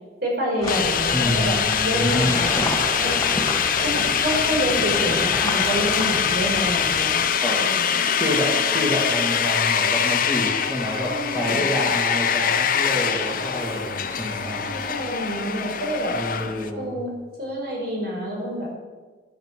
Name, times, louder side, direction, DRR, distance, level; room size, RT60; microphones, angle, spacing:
voice 1, 0.2-1.5 1.8-2.5 3.0-3.2 3.8-7.2 7.6-8.0 11.1-11.6 14.5-16.1 16.7-17.1 17.4-18.7, equal, 55° right, -2 dB, 5.0 m, -27 dB
sound 1, 0.6-7.2, left 1 dB, 20° left, 2.3 m, -30 dB
sound 2, 0.7-16.7, left 7 dB, 50° left, 0.8 m, -23 dB
voice 2, 1.1-2.4 7.3-7.6 8.1-14.7 16.1-17.0, equal, 15° right, -6 dB, 2.4 m, -27 dB
11.0 x 10.5 x 7.6 m, 1.3 s
head